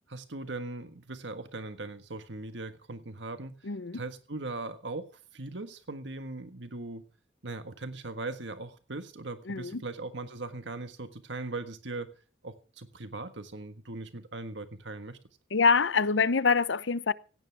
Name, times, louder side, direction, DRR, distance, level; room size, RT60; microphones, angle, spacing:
voice 1, 0.1-5.1 5.3-7.0 7.4-12.1 12.4-15.2, right 2 dB, 75° right, 1.6 m, -39 dB
voice 2, 3.6-4.0 9.5-9.8 15.5-17.1, left 4 dB, 85° left, 0.8 m, -25 dB
17.5 x 17.0 x 3.5 m
head